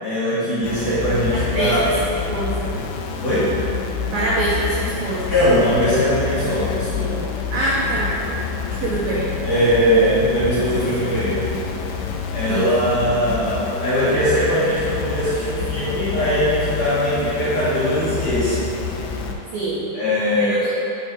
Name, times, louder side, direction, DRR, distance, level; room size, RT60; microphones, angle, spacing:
voice 1, 0.0-1.8 3.2-3.5 5.3-7.2 9.4-11.5 12.3-18.6 19.9-20.7, equal, 50° left, -11 dB, 2.7 m, -20 dB
sound 1, 0.6-19.3, left 6 dB, 85° left, 2.8 m, -28 dB
voice 2, 1.5-1.9 2.3-2.7 4.1-5.3 7.5-8.2 8.8-9.3 9.6-9.7 12.5-12.9 19.5-19.9 20.3-20.7, right 2 dB, 80° right, -6 dB, 2.2 m, -24 dB
8.8 x 6.2 x 4.6 m, 2.8 s
omnidirectional pair, 5.8 m